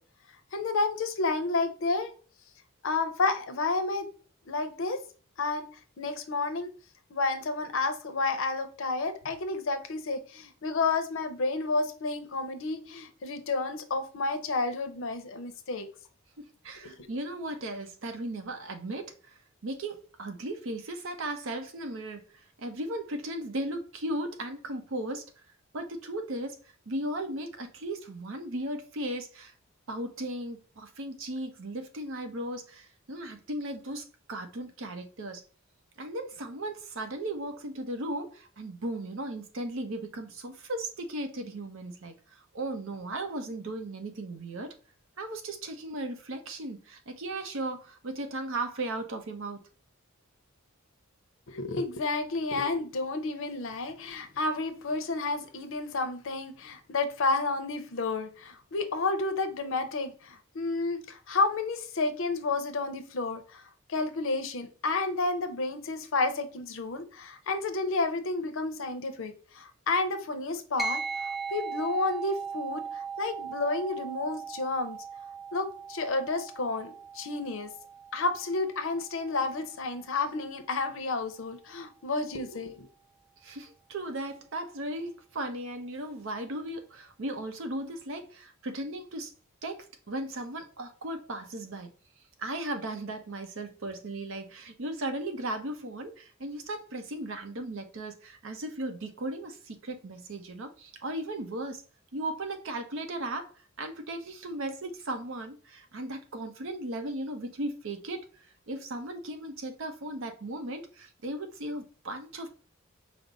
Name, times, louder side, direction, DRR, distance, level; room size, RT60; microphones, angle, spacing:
voice 1, 0.5-2.1 2.8-4.1 4.5-5.0 5.4-5.7 6.0-6.7 7.1-15.9 16.8-17.1 51.5-63.6 63.9-75.0 75.5-77.7 78.1-82.9, left 3 dB, 65° left, 0.6 m, -31 dB
voice 2, 16.4-19.3 19.6-22.2 22.6-25.3 25.7-26.6 26.9-29.5 29.9-35.4 36.0-44.7 45.2-49.6 83.4-89.3 89.6-91.9 92.4-101.8 102.1-112.5, right 1 dB, 65° right, 0.7 m, -36 dB
sound 1, 70.8-80.5, right 5 dB, ahead, 0.3 m, -39 dB
5.1 x 2.0 x 3.8 m
head